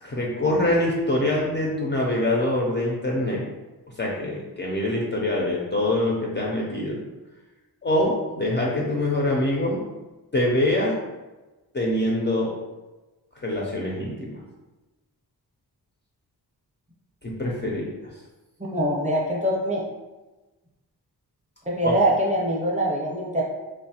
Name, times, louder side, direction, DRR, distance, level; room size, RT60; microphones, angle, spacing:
voice 1, 0.0-3.5 4.0-7.0 7.8-9.8 10.3-11.0 11.7-12.5 13.4-14.4 17.2-18.1 21.8-21.9, left 1 dB, 30° left, -3 dB, 0.4 m, -24 dB
voice 2, 18.7-19.8 21.7-23.4, right 1 dB, 20° right, -4 dB, 0.6 m, -23 dB
3.0 x 2.1 x 2.8 m, 1.1 s
wide cardioid pair, 100°, 39 cm